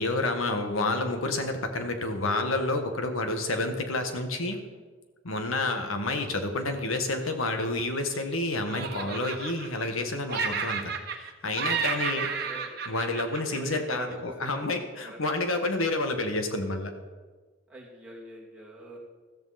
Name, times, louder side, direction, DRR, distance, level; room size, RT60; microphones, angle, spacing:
voice 1, 0.0-4.6 5.2-12.3 12.9-16.9, left 2 dB, 85° left, 6 dB, 1.6 m, -29 dB
Laughter, 7.1-8.3 8.7-10.0 10.3-11.3 11.5-14.1, right 6 dB, 50° right, 1.2 m, -32 dB
voice 2, 12.2-12.7 13.5-14.6 15.0-15.2 17.7-19.0, right 1 dB, 5° right, -5 dB, 2.5 m, -44 dB
14.0 x 14.0 x 4.3 m, 1.4 s
head